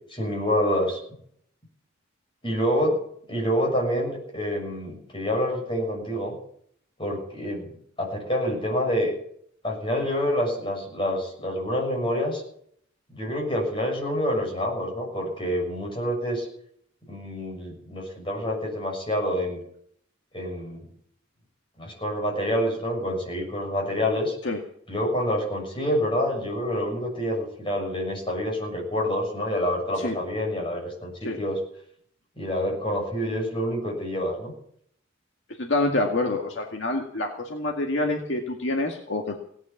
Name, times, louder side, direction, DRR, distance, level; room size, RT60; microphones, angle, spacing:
voice 1, 0.1-1.0 2.4-3.0 3.3-6.3 7.0-7.7 8.0-9.1 9.6-12.4 13.1-16.5 17.1-19.6 20.3-20.8 21.8-24.4 24.9-31.6 32.4-34.5, equal, 25° left, -1 dB, 6.9 m, -27 dB
voice 2, 35.6-39.4, left 2 dB, 65° left, 1 dB, 2.1 m, -27 dB
17.5 x 10.0 x 7.4 m, 0.65 s
head